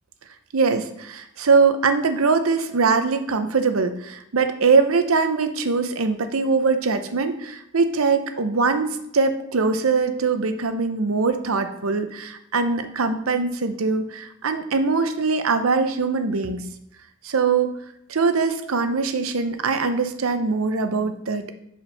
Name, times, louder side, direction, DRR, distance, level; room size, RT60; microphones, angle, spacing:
voice 1, 0.5-16.7 17.2-17.7 18.1-21.5, right 4 dB, 70° right, 9 dB, 0.7 m, -22 dB
5.5 x 5.1 x 5.6 m, 0.78 s
head